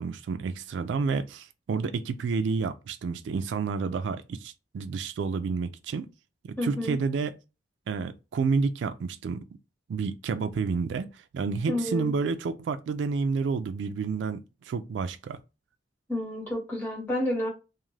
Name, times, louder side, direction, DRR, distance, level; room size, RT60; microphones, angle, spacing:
voice 1, 0.0-6.1 6.4-7.3 7.9-9.4 9.9-15.4, right 5 dB, 70° right, 0.3 m, -30 dB
voice 2, 6.6-7.0 11.7-12.1 16.1-17.5, left 1 dB, 10° left, 1.3 m, -30 dB
2.5 x 2.4 x 3.1 m
head